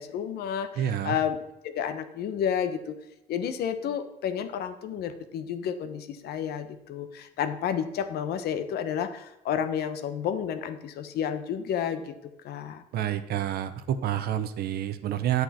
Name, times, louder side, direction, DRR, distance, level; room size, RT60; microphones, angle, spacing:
voice 1, 0.0-1.4 1.6-2.9 3.3-12.8, left 8 dB, 70° left, 10 dB, 1.1 m, -31 dB
voice 2, 0.8-1.1 12.9-15.4, right 11 dB, 70° right, 11 dB, 0.9 m, -28 dB
9.5 x 8.0 x 4.3 m, 0.90 s
cardioid pair, 110°, 17 cm